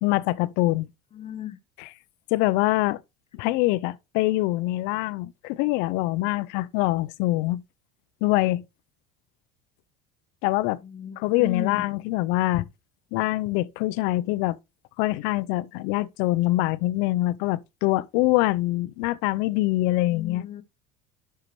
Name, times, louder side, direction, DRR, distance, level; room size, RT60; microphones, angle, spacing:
voice 1, 0.0-0.9 1.8-1.9 2.3-3.0 3.3-7.6 8.2-8.6 10.4-10.8 11.2-12.6 13.1-14.6 15.0-20.5, left 18 dB, 70° left, 0.5 m, -24 dB
voice 2, 1.1-1.6 10.8-11.8 20.1-20.6, left 9 dB, 35° left, 0.9 m, -36 dB
11.0 x 5.7 x 3.1 m
supercardioid pair, 100°, 18 cm